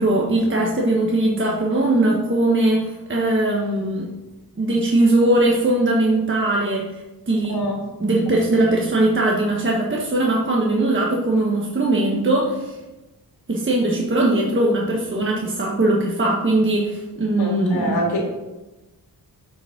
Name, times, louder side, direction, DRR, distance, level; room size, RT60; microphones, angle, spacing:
voice 1, 0.0-4.1 4.6-6.9 7.3-7.6 8.0-12.8 13.5-18.0, right 2 dB, 30° right, -3 dB, 1.4 m, -20 dB
voice 2, 7.5-7.9 17.4-18.2, equal, 90° left, 0 dB, 2.4 m, -25 dB
7.1 x 6.3 x 6.0 m, 1.1 s
wide cardioid pair, 90°, 38 cm